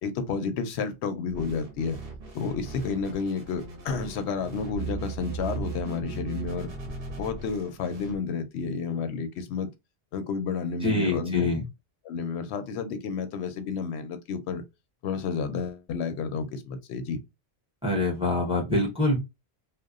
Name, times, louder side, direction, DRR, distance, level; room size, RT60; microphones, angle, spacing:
voice 1, 0.0-2.0 2.3-6.7 7.2-9.7 10.1-11.5 12.0-14.6 15.0-17.2, left 5 dB, 90° left, 0.8 m, -31 dB
sound 1, 1.3-8.2, right 4 dB, 60° right, 1.0 m, -38 dB
voice 2, 10.8-11.6 17.8-19.2, left 2 dB, 5° right, 0.8 m, -25 dB
2.8 x 2.1 x 2.3 m
omnidirectional pair, 1.1 m